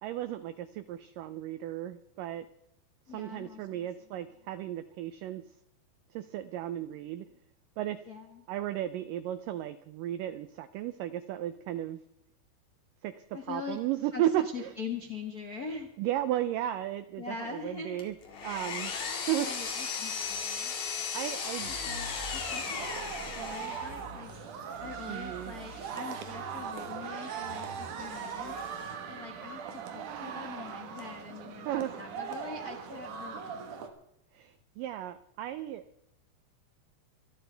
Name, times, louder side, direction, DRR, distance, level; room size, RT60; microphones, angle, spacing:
voice 1, 0.0-2.5 3.1-5.4 6.1-7.3 7.8-8.0 8.5-12.0 13.0-14.7 16.0-18.1 18.4-18.9 19.3-19.7 21.1-21.7 25.0-25.5 31.7-31.9 34.3-35.8, right 12 dB, 90° right, 12 dB, 1.9 m, -34 dB
voice 2, 3.1-3.9 8.1-8.4 13.3-13.8 14.1-15.9 17.2-18.0 19.4-20.7 21.7-24.3 24.8-28.6 29.1-33.7, left 5 dB, 85° left, 2 dB, 0.8 m, -43 dB
Power tool, 18.0-24.1, left 5 dB, 50° left, 3.2 m, -36 dB
sound 1, 21.6-28.9, right 1 dB, 25° right, 3.5 m, -48 dB
sound 2, 22.4-33.9, right 7 dB, 60° right, 2.5 m, -40 dB
25.5 x 12.5 x 3.4 m, 0.81 s
omnidirectional pair, 4.6 m